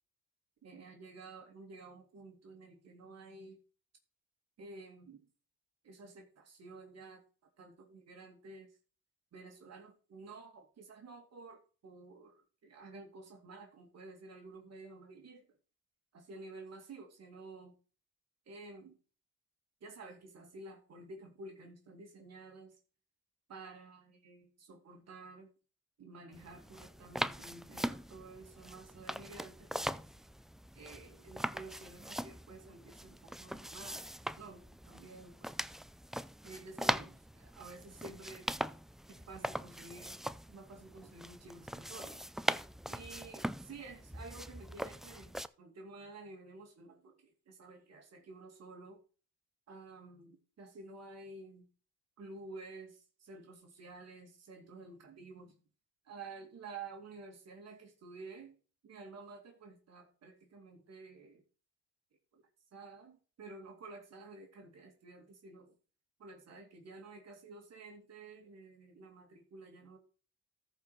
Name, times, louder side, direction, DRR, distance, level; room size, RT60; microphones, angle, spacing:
voice 1, 0.6-3.6 4.6-5.2 5.8-7.2 7.6-8.7 9.3-15.5 16.1-17.7 18.5-19.0 19.8-22.7 23.5-25.5 26.0-30.2 30.7-34.1 34.4-35.5 36.4-38.5 39.3-40.2 40.5-42.2 42.9-49.0 49.7-51.7 52.2-55.5 56.0-58.5 58.8-61.4 62.3-62.4 62.7-65.7 66.2-70.0, right 3 dB, 60° right, 2.4 m, -51 dB
sound 1, 26.3-45.5, equal, ahead, 0.4 m, -41 dB
14.0 x 4.8 x 4.8 m
cardioid pair, 90°, 30 cm